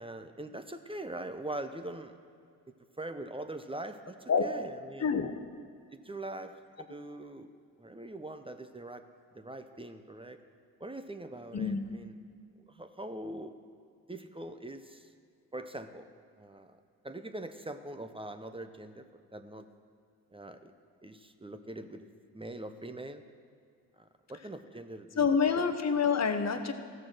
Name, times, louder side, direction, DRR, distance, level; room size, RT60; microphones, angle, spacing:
voice 1, 0.0-2.1 3.0-5.1 6.0-7.5 7.8-9.0 9.3-10.4 10.8-12.1 12.7-13.5 14.1-15.1 15.5-16.1 16.4-16.8 17.0-19.7 20.3-20.7 21.0-22.1 22.3-23.2 24.0-25.7, right 1 dB, 15° right, 8 dB, 0.7 m, -42 dB
voice 2, 5.0-5.4 11.5-11.9 25.2-26.7, left 6 dB, 40° left, 7 dB, 1.0 m, -27 dB
14.0 x 6.6 x 6.2 m, 2.3 s
supercardioid pair, 55°, 39 cm